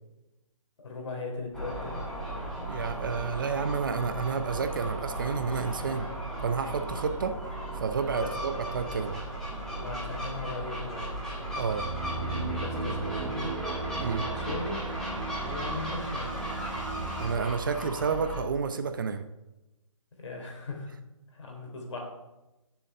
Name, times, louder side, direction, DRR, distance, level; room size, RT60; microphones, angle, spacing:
voice 1, 0.8-2.0 8.2-8.4 9.7-11.2 12.6-13.6 14.3-14.9 15.3-16.4 20.2-20.9 21.3-22.1, left 3 dB, 60° left, 1 dB, 3.2 m, -38 dB
Gull seagull, 1.5-18.4, right 1 dB, 5° left, 1.8 m, -36 dB
voice 2, 2.7-6.1 6.4-7.3 7.8-9.2 11.6-11.8 14.0-14.2 17.2-19.2, right 5 dB, 40° right, 9 dB, 0.6 m, -30 dB
sound 1, 11.4-17.4, right 3 dB, 65° right, 1.9 m, -36 dB
7.0 x 7.0 x 6.6 m, 1.0 s
hypercardioid pair, 160°, 18 cm